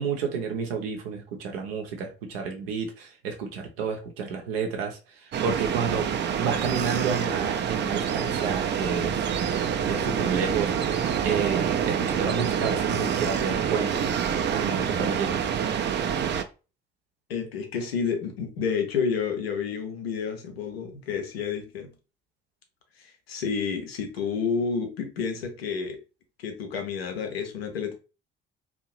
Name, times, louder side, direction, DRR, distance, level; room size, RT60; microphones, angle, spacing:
voice 1, 0.0-5.0 5.4-6.1 6.4-9.3 9.9-10.9 11.2-14.0 14.5-15.4, right 6 dB, 75° right, 0.7 m, -30 dB
sound 1, 5.3-16.4, right 8 dB, 35° right, 0.4 m, -27 dB
voice 2, 17.3-21.9 23.0-26.0 26.4-27.9, left 6 dB, 85° left, 0.5 m, -30 dB
2.6 x 2.0 x 3.0 m
figure-of-eight pair, 45°, 30 cm